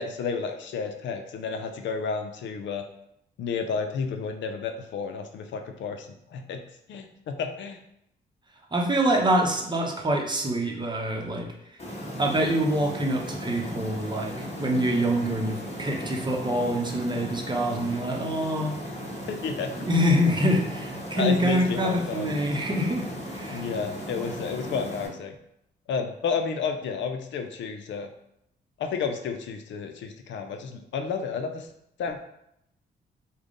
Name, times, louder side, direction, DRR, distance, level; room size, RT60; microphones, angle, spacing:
voice 1, 0.0-2.8 3.4-6.6 6.9-7.8 19.3-19.7 21.1-22.3 23.5-25.3 25.9-28.1 28.8-31.7 32.0-32.2, left 5 dB, 75° left, 6 dB, 0.5 m, -31 dB
voice 2, 8.7-11.5 12.2-18.7 19.7-23.1 23.3-23.7, equal, 25° right, 0 dB, 0.8 m, -25 dB
sound 1, 11.8-25.1, equal, 35° left, 1.3 m, -37 dB
3.5 x 2.2 x 3.7 m, 0.76 s
cardioid pair, 80°, 19 cm